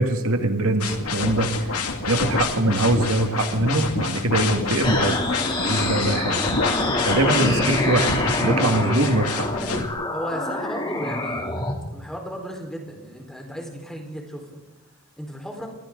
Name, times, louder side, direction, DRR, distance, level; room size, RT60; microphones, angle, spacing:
voice 1, 0.0-1.5 2.1-5.2 5.6-6.4 7.1-8.1 8.4-9.5, right 2 dB, 70° right, 5 dB, 2.0 m, -22 dB
sound 1, 0.8-9.9, left 4 dB, 85° left, 2.2 m, -27 dB
sound 2, 4.8-11.7, left 2 dB, 20° left, 2.9 m, -26 dB
voice 2, 9.6-11.6 11.9-14.6 15.2-15.7, equal, ahead, 1 dB, 4.2 m, -35 dB
28.5 x 23.5 x 3.9 m, 1.0 s
head